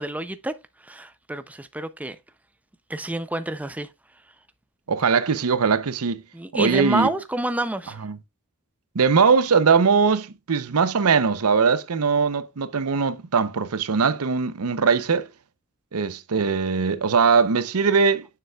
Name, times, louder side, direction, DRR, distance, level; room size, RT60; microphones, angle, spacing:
voice 1, 0.0-2.2 2.9-3.9 6.3-8.0, right 1 dB, 5° right, 0.4 m, -28 dB
voice 2, 4.9-6.2 6.5-7.1 8.0-8.2 8.9-15.3 15.9-18.3, right 5 dB, 80° right, 0.7 m, -21 dB
9.8 x 6.7 x 2.3 m
head